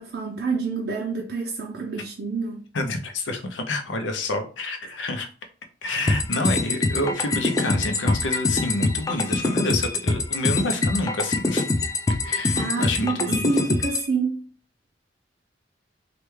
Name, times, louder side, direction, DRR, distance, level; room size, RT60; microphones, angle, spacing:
voice 1, 0.0-2.6 12.5-14.5, right 4 dB, 60° right, 0.4 m, -27 dB
voice 2, 2.7-5.3 5.8-11.6 12.2-13.4, left 2 dB, 90° left, 0.6 m, -28 dB
sound 1, 6.1-14.1, left 3 dB, 20° left, 0.3 m, -24 dB
3.3 x 2.3 x 3.1 m
head